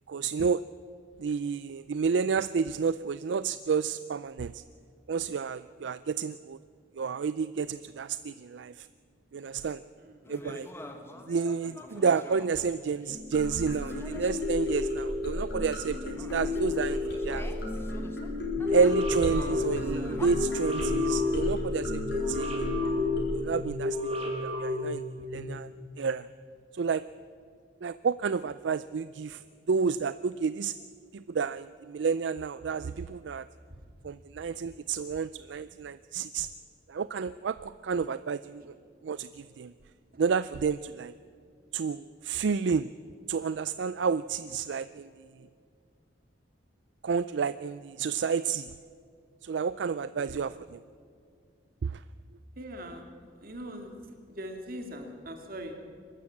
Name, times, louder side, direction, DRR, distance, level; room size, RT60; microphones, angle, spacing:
voice 1, 0.1-0.6 1.2-4.6 5.1-6.6 7.0-8.9 9.3-9.8 10.3-10.7 11.3-17.5 18.7-22.7 23.3-25.0 25.3-25.7 26.0-26.3 26.7-27.0 27.8-29.4 29.7-30.7 31.1-33.5 34.0-36.5 36.9-38.7 39.0-39.7 40.2-41.1 41.7-42.9 43.3-45.2 47.0-48.7 49.4-50.8 51.8-52.0, right 5 dB, 75° right, 15 dB, 0.4 m, -30 dB
sound 1, 10.2-15.5 15.9-20.3, left 1 dB, 15° left, 1.3 m, -46 dB
sound 2, 13.1-23.4, left 3 dB, 60° left, 5.1 m, -32 dB
sound 3, 18.6-25.4, left 1 dB, 35° right, 2.7 m, -33 dB
voice 2, 52.6-53.1 53.4-53.9 54.4-55.7, equal, 50° right, 4 dB, 2.5 m, -41 dB
23.0 x 13.0 x 8.5 m, 2.2 s
head